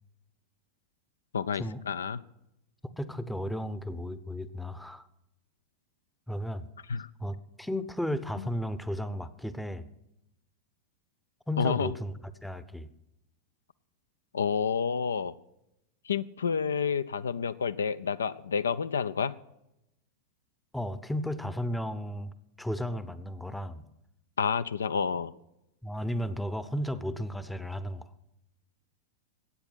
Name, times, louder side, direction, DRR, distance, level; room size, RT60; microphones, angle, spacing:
voice 1, 1.3-2.2 6.9-7.1 11.6-11.9 14.3-15.3 16.1-19.3 24.4-25.3, left 6 dB, 70° left, 15 dB, 0.4 m, -29 dB
voice 2, 2.8-5.1 6.3-6.7 7.2-9.9 11.5-12.9 20.7-23.9 25.8-28.1, equal, 5° left, 14 dB, 0.7 m, -34 dB
13.0 x 8.8 x 6.1 m, 0.86 s
figure-of-eight pair, 90°, 0 cm